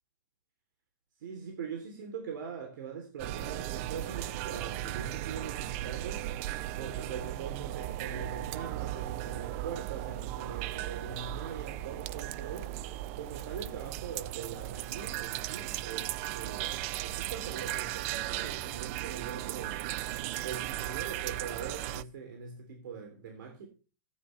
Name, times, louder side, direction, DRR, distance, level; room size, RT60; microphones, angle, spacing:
voice 1, 1.2-6.3 6.8-12.7 13.1-16.7 17.0-19.8 20.4-23.7, right 6 dB, 75° right, 3.2 m, -42 dB
sound 1, 3.2-22.0, right 15 dB, 45° right, 0.5 m, -37 dB
14.5 x 9.6 x 3.3 m
hypercardioid pair, 145°, 11 cm